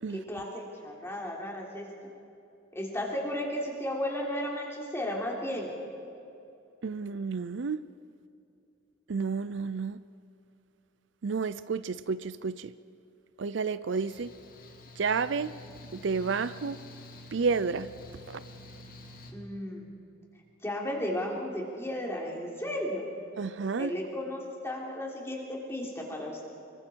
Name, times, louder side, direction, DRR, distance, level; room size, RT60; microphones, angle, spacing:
voice 1, 0.1-1.9 2.7-5.7 19.3-20.0 20.6-23.1 23.8-26.5, left 1 dB, 15° left, 3.5 m, -34 dB
voice 2, 6.8-7.8 9.1-10.0 11.2-12.7 13.4-14.3 15.0-15.5 15.9-16.8 17.3-17.9 18.3-18.4 23.4-23.9, right 5 dB, 65° right, 0.5 m, -30 dB
Mechanical fan, 13.9-19.3, left 1 dB, 45° left, 2.1 m, -49 dB
26.0 x 23.5 x 4.6 m
head